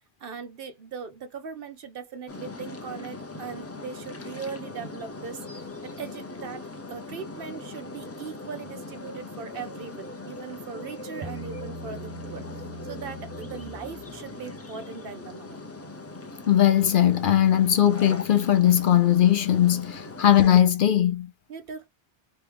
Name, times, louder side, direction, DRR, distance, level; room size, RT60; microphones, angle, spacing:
voice 1, 0.2-15.6 20.2-20.3 21.5-21.9, right 6 dB, 65° right, 0.9 m, -39 dB
sound 1, 2.3-20.6, left 2 dB, 20° left, 0.4 m, -40 dB
Bass guitar, 11.2-14.6, right 1 dB, 40° right, 1.1 m, -41 dB
voice 2, 16.5-21.3, left 11 dB, 60° left, 0.7 m, -19 dB
3.1 x 3.1 x 3.3 m
omnidirectional pair, 1.1 m